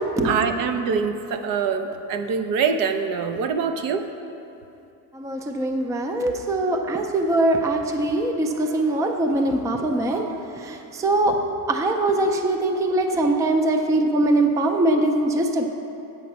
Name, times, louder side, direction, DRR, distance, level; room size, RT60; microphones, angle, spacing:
voice 1, 0.2-4.1 6.9-7.0, right 6 dB, 65° right, 8 dB, 0.7 m, -24 dB
voice 2, 5.1-11.4 11.7-15.7, right 2 dB, 10° right, 5 dB, 0.4 m, -22 dB
8.4 x 5.2 x 6.9 m, 2.7 s
cardioid pair, 140°, 36 cm